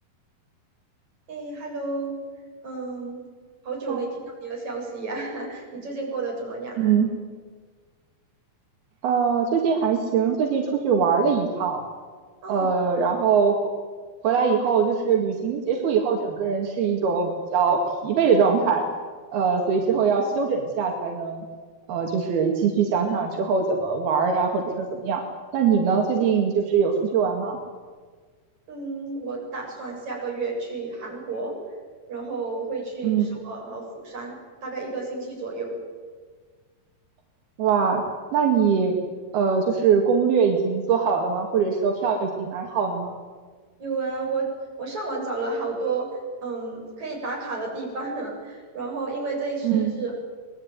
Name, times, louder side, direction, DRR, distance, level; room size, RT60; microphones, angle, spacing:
voice 1, 1.3-2.2 2.6-3.2 3.6-6.9 12.4-12.7 28.7-31.5 32.1-35.8 43.8-44.5 44.8-46.1 46.4-50.1, right 3 dB, 50° right, -1 dB, 8.9 m, -31 dB
voice 2, 6.8-7.1 9.0-11.8 12.5-13.6 14.2-18.8 19.3-21.5 21.9-25.2 25.5-27.6 33.0-33.3 37.6-38.0 38.3-39.0 39.3-43.1 49.6-49.9, right 6 dB, 85° right, 2 dB, 4.1 m, -22 dB
25.0 x 20.5 x 9.5 m, 1.5 s
omnidirectional pair, 4.3 m